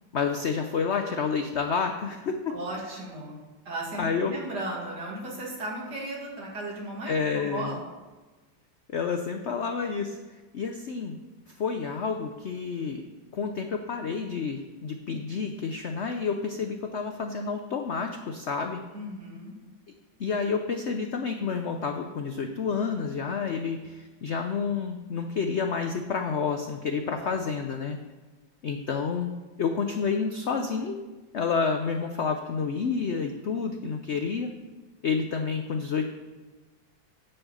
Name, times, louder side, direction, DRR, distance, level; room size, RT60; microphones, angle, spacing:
voice 1, 0.1-2.6 4.0-4.3 7.1-7.8 8.9-10.2 10.5-11.2 11.5-18.8 20.2-28.0 28.6-29.3 29.6-31.0 31.3-34.5 35.0-36.1, left 5 dB, 75° left, 5 dB, 0.6 m, -29 dB
voice 2, 2.5-3.4 3.6-7.8 18.9-19.5 27.1-27.4, right 1 dB, 65° right, -3 dB, 2.9 m, -36 dB
10.5 x 5.5 x 7.1 m, 1.2 s
omnidirectional pair, 2.0 m